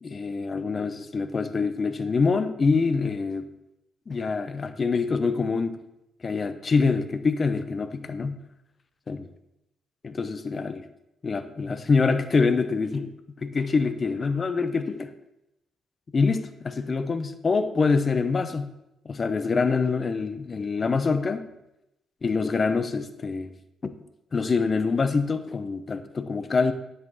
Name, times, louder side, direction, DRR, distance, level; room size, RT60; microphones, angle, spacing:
voice 1, 0.0-3.5 4.1-5.8 6.2-8.3 9.1-9.3 10.0-10.8 11.2-15.1 16.1-18.7 19.0-21.5 22.2-23.5 23.8-23.9 24.3-26.7, left 4 dB, 35° left, 10 dB, 0.8 m, -25 dB
9.9 x 7.9 x 4.1 m, 0.87 s
cardioid pair, 90°, 0 cm